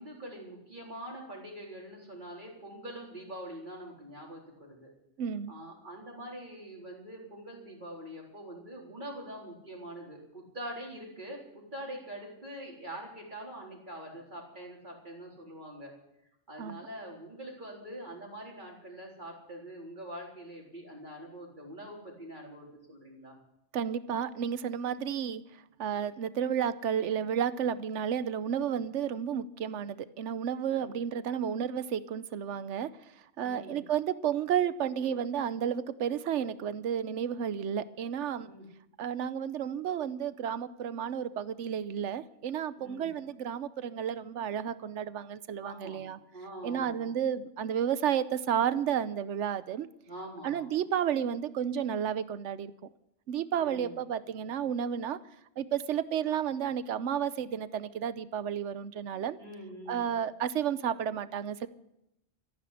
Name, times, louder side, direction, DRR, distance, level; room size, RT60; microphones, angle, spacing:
voice 1, 0.0-4.9 5.5-15.9 16.5-23.4 30.7-31.0 33.4-33.8 38.4-38.7 42.8-43.1 45.6-47.1 50.1-50.7 53.6-54.0 59.4-60.1, right 1 dB, 40° right, -2 dB, 4.2 m, -44 dB
voice 2, 5.2-5.5 16.6-16.8 23.7-25.4 25.8-32.9 33.4-38.5 39.0-46.2 46.6-49.9 50.4-52.7 53.3-55.2 55.6-59.4 59.9-61.7, right 8 dB, 75° right, 15 dB, 1.1 m, -32 dB
14.5 x 11.0 x 8.3 m, 0.83 s
omnidirectional pair, 1.2 m